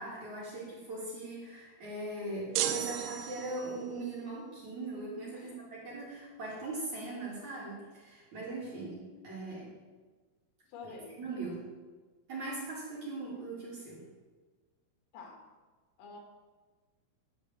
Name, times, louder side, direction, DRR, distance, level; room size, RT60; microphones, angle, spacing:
voice 1, 0.0-9.7 10.8-11.6 12.3-14.0, right 2 dB, 45° right, -7 dB, 2.9 m, -40 dB
sound 1, 2.6-3.9, right 10 dB, 85° right, 3.3 m, -34 dB
voice 2, 10.7-11.2 15.1-15.4 16.0-16.2, left 4 dB, 85° left, 2 dB, 4.2 m, -48 dB
11.0 x 5.2 x 7.4 m, 1.3 s
omnidirectional pair, 5.8 m